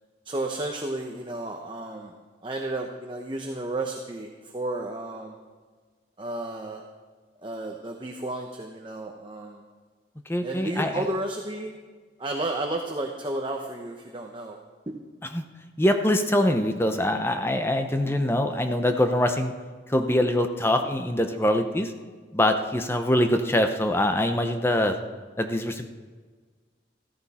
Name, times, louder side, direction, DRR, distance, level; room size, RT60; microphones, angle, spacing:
voice 1, 0.3-2.1 2.4-5.4 6.2-6.8 7.4-9.6 10.4-11.8 12.2-14.6 14.9-15.0, right 2 dB, 25° right, 2 dB, 0.8 m, -32 dB
voice 2, 10.3-11.1 15.3-15.4 15.8-19.5 19.9-21.9 22.3-25.0 25.4-25.9, left 1 dB, 15° left, 6 dB, 0.7 m, -23 dB
14.5 x 14.0 x 4.2 m, 1.5 s
head